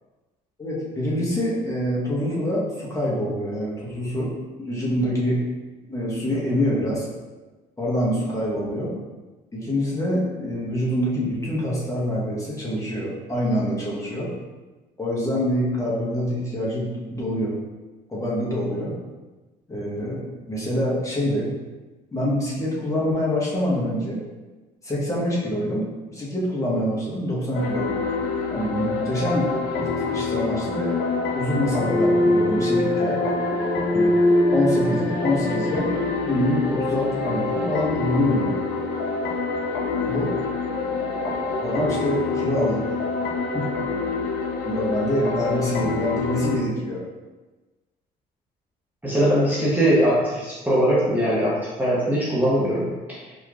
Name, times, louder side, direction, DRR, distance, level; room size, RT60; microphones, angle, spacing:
voice 1, 0.6-4.3 4.6-5.4 5.9-7.1 7.8-9.0 9.5-14.3 15.0-17.6 18.1-18.9 19.7-21.5 22.1-24.2 24.8-28.0 28.5-29.5 29.8-31.0 31.3-33.2 33.9-34.1 34.5-35.9 36.2-38.5 40.1-40.3 41.6-43.0 44.7-47.0, equal, 20° left, -6 dB, 1.0 m, -25 dB
sound 1, 27.5-46.6, left 3 dB, 80° left, 0.5 m, -25 dB
voice 2, 49.0-53.3, equal, 10° right, -7 dB, 0.8 m, -21 dB
4.3 x 3.0 x 2.4 m, 1.2 s
cardioid pair, 110°, 17 cm